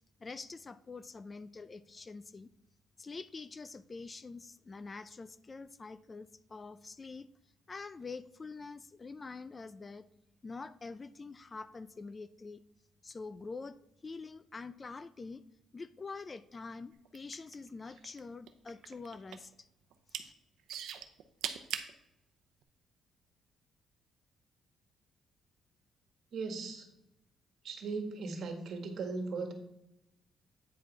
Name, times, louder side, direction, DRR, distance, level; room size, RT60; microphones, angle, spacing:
voice 1, 0.2-2.5 3.0-7.3 7.7-10.1 10.4-12.6 13.0-15.4 15.7-19.7 20.1-20.3, left 4 dB, 30° left, 14 dB, 0.4 m, -46 dB
sound 1, 17.0-18.2 18.5-19.5 19.9-20.2 20.7-21.9 22.6-22.7, right 9 dB, 80° right, 0.7 m, -39 dB
voice 2, 26.3-26.9 27.6-29.5, right 4 dB, 65° right, 4 dB, 1.7 m, -38 dB
9.1 x 4.8 x 4.7 m, 0.87 s
cardioid pair, 90°, 0 cm